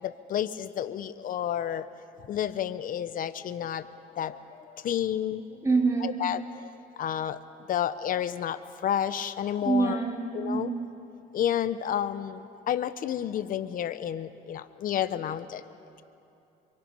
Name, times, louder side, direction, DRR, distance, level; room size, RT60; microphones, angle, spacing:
voice 1, 0.0-1.9 2.3-3.9 4.1-5.7 6.0-7.4 7.7-10.0 10.3-10.7 11.3-15.6, left 10 dB, 55° left, 13 dB, 0.9 m, -31 dB
voice 2, 5.6-6.2 9.6-10.8, right 4 dB, 20° right, -1 dB, 3.7 m, -26 dB
26.5 x 23.5 x 5.6 m, 2.8 s
cardioid pair, 110°, 17 cm